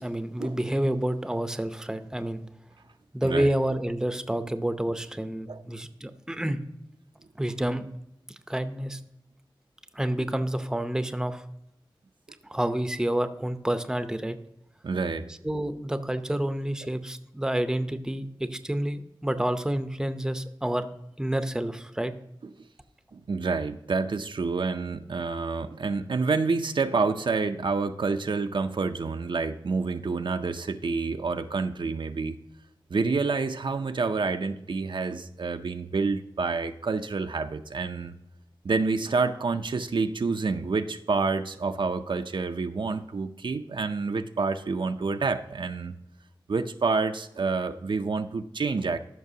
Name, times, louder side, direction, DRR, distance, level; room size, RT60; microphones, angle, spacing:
voice 1, 0.0-2.4 3.1-6.6 7.4-7.8 8.5-9.0 9.9-11.4 12.5-14.4 15.4-20.9 21.2-22.1, right 1 dB, 5° right, 9 dB, 0.6 m, -29 dB
voice 2, 14.8-15.3 23.1-32.4 32.9-38.1 38.6-45.9 46.5-49.0, right 4 dB, 70° right, 7 dB, 0.5 m, -28 dB
13.5 x 6.0 x 2.7 m, 0.83 s
wide cardioid pair, 80°, 9 cm